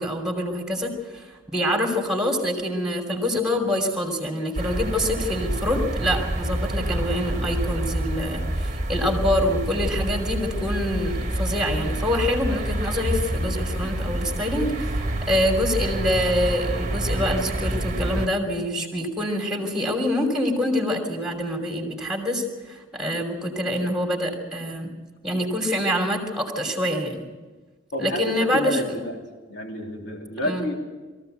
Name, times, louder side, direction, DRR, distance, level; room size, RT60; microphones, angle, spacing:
voice 1, 0.0-24.9 25.2-27.2 28.0-29.0 30.4-30.6, left 1 dB, 5° right, 3 dB, 2.9 m, -26 dB
sound 1, 4.5-18.3, right 1 dB, 35° right, 1.3 m, -27 dB
voice 2, 27.9-29.2 29.5-30.7, equal, 65° left, 0 dB, 3.4 m, -29 dB
22.0 x 14.5 x 8.0 m, 1.3 s
head